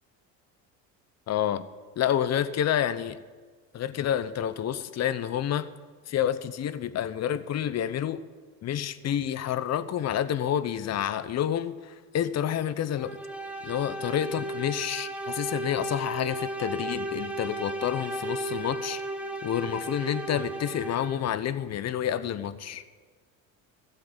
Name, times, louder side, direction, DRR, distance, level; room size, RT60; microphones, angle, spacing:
voice 1, 1.3-1.6 2.0-3.2 3.7-5.7 6.1-8.2 8.6-13.2 13.6-19.0 19.4-22.8, left 10 dB, 40° left, 14 dB, 0.9 m, -29 dB
sound 1, 13.0-21.4, right 1 dB, 5° right, 1.4 m, -35 dB
14.5 x 7.7 x 9.1 m, 1.5 s
supercardioid pair, 95°, 38 cm